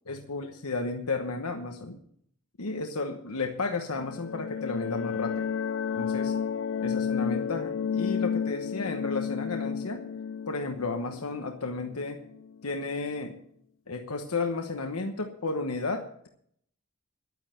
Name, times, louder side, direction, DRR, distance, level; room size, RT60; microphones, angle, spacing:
voice 1, 0.1-2.0 2.6-5.5 5.9-6.3 6.8-10.1 10.5-12.2 12.6-13.4 13.9-16.3, left 3 dB, 90° left, 4 dB, 1.1 m, -33 dB
sound 1, 3.9-12.5, left 7 dB, 60° left, 0.4 m, -31 dB
11.5 x 9.6 x 7.7 m, 0.67 s
head